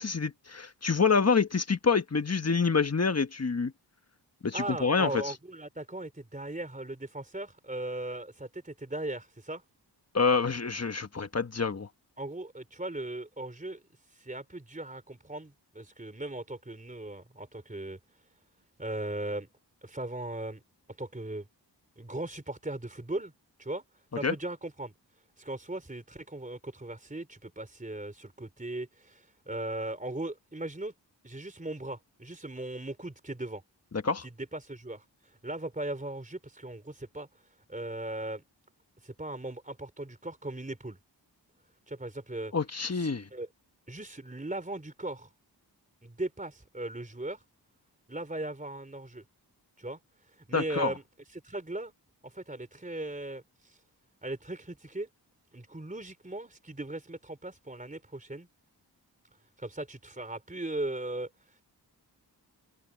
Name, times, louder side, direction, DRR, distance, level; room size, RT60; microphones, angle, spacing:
voice 1, 0.0-3.7 4.4-5.2 10.1-11.9 24.2-24.3 34.0-34.2 42.5-43.3 50.5-50.9, left 5 dB, 35° left, 1.3 m, -27 dB
voice 2, 4.5-9.6 12.2-13.8 14.1-18.0 18.8-19.5 19.8-20.6 21.0-21.5 22.0-23.3 23.6-23.8 24.1-24.9 25.4-30.9 31.2-33.6 34.2-35.1 35.4-37.3 37.7-38.4 39.0-41.0 41.9-42.5 42.9-43.5 43.9-45.3 46.0-47.4 48.1-49.2 49.8-50.0 50.5-51.0 51.3-51.9 52.2-53.8 54.2-55.1 55.5-58.5 59.6-61.3, right 2 dB, 20° right, 3.8 m, -38 dB
wide cardioid pair, 100°, 42 cm